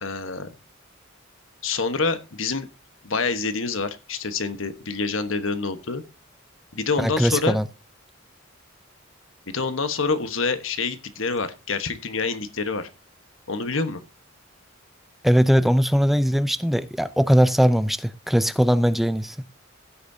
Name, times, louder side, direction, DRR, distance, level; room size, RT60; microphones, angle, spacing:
voice 1, 0.0-0.5 1.6-2.7 3.0-6.0 6.7-7.6 9.5-12.9 13.5-14.0, left 4 dB, 70° left, 1.3 m, -27 dB
voice 2, 7.0-7.6 15.2-19.4, equal, ahead, 0.6 m, -20 dB
15.5 x 8.4 x 2.8 m
head